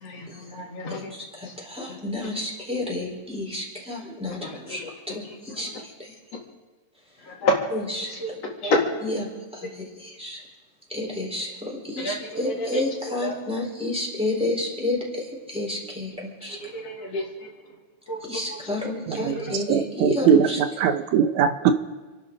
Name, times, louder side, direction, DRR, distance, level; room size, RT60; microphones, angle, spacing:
voice 1, 0.0-1.1 7.3-7.6 8.2-8.3 8.6-8.8 12.0-12.7 13.2-13.3 16.6-17.2 18.1-18.2 19.1-19.4, left 1 dB, 60° left, -1 dB, 3.1 m, -27 dB
voice 2, 1.1-4.8 5.1-5.7 6.0-6.1 7.7-8.4 9.0-10.4 10.9-16.6 18.3-20.6, left 2 dB, ahead, -3 dB, 3.8 m, -30 dB
voice 3, 19.1-20.5 20.8-21.7, right 8 dB, 80° right, 9 dB, 2.0 m, -21 dB
28.5 x 12.0 x 3.9 m, 1.3 s
omnidirectional pair, 3.3 m